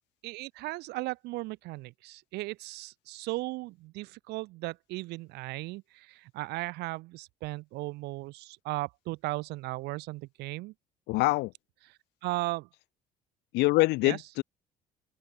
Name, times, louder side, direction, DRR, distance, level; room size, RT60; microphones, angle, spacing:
voice 1, 0.2-10.7 12.2-12.7 14.0-14.2, right 21 dB, 80° right, 0.4 m, -36 dB
voice 2, 11.1-11.5 13.5-14.4, left 22 dB, 85° left, 0.4 m, -25 dB
open air
cardioid pair, 110°, 17 cm